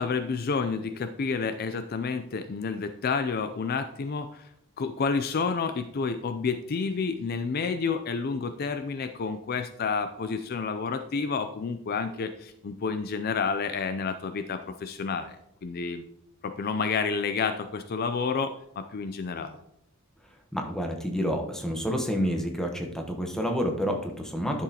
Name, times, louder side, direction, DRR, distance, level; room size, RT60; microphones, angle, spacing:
voice 1, 0.0-4.5 4.8-15.4 15.6-16.1 16.4-19.6, left 5 dB, 45° left, 9 dB, 0.4 m, -30 dB
voice 2, 20.5-24.6, equal, 5° left, 2 dB, 1.0 m, -29 dB
11.0 x 6.2 x 2.9 m, 0.77 s
head